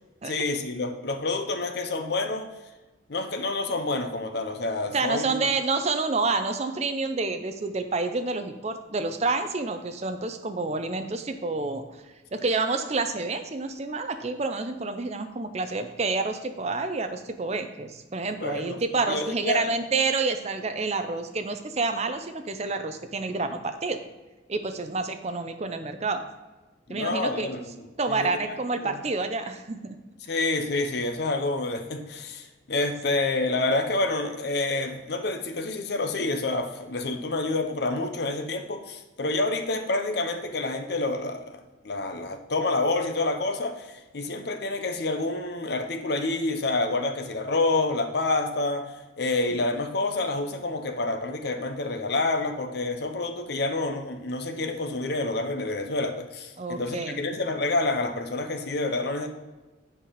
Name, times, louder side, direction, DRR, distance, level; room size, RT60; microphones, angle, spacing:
voice 1, 0.2-2.5 3.1-5.3 18.4-18.8 19.1-19.7 26.9-27.6 28.1-28.3 28.8-28.9 30.3-41.6 41.8-59.3, left 2 dB, 55° left, 6 dB, 0.7 m, -28 dB
voice 2, 4.9-11.8 12.3-24.0 24.5-26.2 26.9-27.6 28.0-30.0 56.6-57.2, right 3 dB, 35° right, 7 dB, 0.5 m, -28 dB
7.4 x 4.7 x 5.1 m, 1.2 s
head